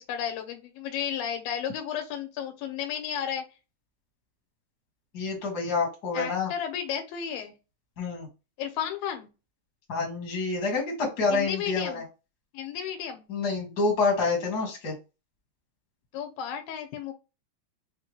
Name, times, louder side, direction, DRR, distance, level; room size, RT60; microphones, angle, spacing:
voice 1, 0.0-3.4 6.1-7.5 8.6-9.3 11.3-12.0 12.5-13.2 16.1-17.1, left 9 dB, 80° left, 5 dB, 2.6 m, -33 dB
voice 2, 5.1-6.5 8.0-8.3 9.9-12.0 13.3-14.9, left 4 dB, 50° left, 0 dB, 1.2 m, -27 dB
5.6 x 2.2 x 3.1 m, 0.28 s
omnidirectional pair, 4.2 m